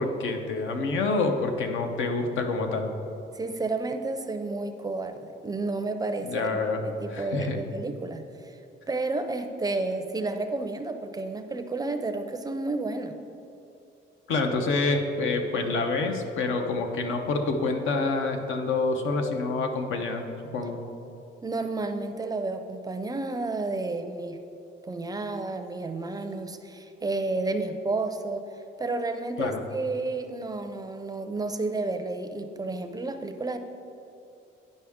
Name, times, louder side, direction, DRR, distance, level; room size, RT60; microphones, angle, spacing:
voice 1, 0.0-2.9 6.2-6.8 7.1-7.6 14.3-20.2 20.5-20.8 29.4-29.6, left 3 dB, 85° left, 4 dB, 0.8 m, -27 dB
voice 2, 3.3-8.6 8.9-13.1 21.4-24.4 24.8-28.5 28.8-33.6, right 3 dB, 20° right, 8 dB, 0.4 m, -31 dB
10.0 x 5.3 x 3.5 m, 2.7 s
cardioid pair, 125°, 20 cm